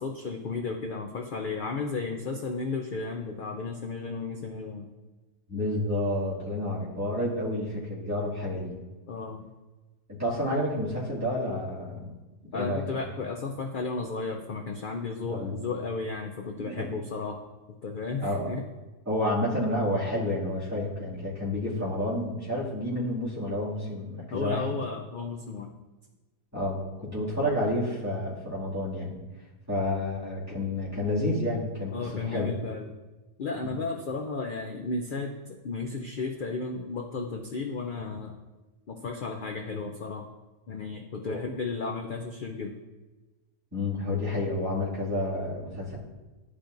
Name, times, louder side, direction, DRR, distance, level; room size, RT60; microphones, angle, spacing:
voice 1, 0.0-4.9 9.1-9.5 12.5-17.4 17.8-18.6 24.3-25.7 31.9-32.9 33.4-38.3 38.9-40.3 40.7-42.8, left 4 dB, 75° left, 3 dB, 0.4 m, -34 dB
voice 2, 5.5-8.7 10.1-12.0 12.5-12.8 15.3-15.5 16.6-16.9 18.2-18.5 19.1-24.7 26.5-29.2 29.7-31.9 32.2-32.5 33.6-33.7 41.2-41.4 43.7-46.0, left 1 dB, 10° right, -9 dB, 2.2 m, -30 dB
11.5 x 5.0 x 2.6 m, 1.2 s
omnidirectional pair, 1.5 m